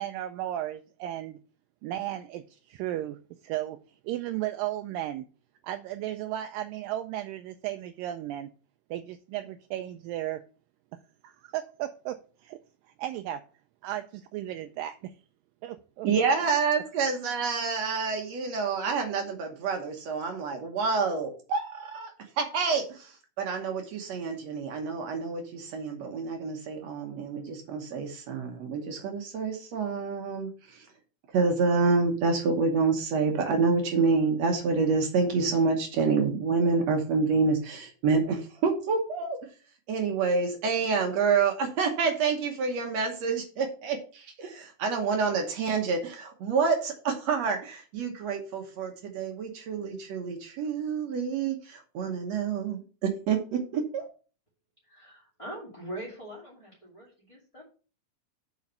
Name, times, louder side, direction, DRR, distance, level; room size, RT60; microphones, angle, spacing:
voice 1, 0.0-1.4 1.8-5.3 5.6-8.5 8.9-10.4 11.2-12.6 13.0-13.4 13.8-15.1 15.6-16.1, right 13 dB, 80° right, 2.1 m, -35 dB
voice 2, 16.0-22.1 22.4-30.9 31.3-39.4 39.9-54.1, right 4 dB, 65° right, 1.8 m, -28 dB
voice 3, 54.8-57.6, right 1 dB, 10° left, 1.7 m, -42 dB
7.2 x 5.2 x 5.4 m
omnidirectional pair, 4.2 m